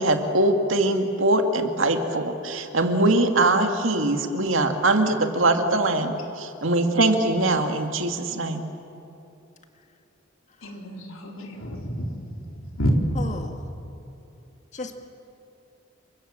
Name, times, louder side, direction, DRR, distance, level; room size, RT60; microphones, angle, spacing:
voice 1, 0.0-8.7, right 2 dB, 70° right, 5 dB, 2.2 m, -22 dB
voice 2, 10.6-12.9, equal, 90° left, 1 dB, 4.1 m, -30 dB
voice 3, 13.2-13.6 14.7-15.0, left 2 dB, 35° left, 5 dB, 2.0 m, -33 dB
29.0 x 24.5 x 7.6 m, 2.8 s
head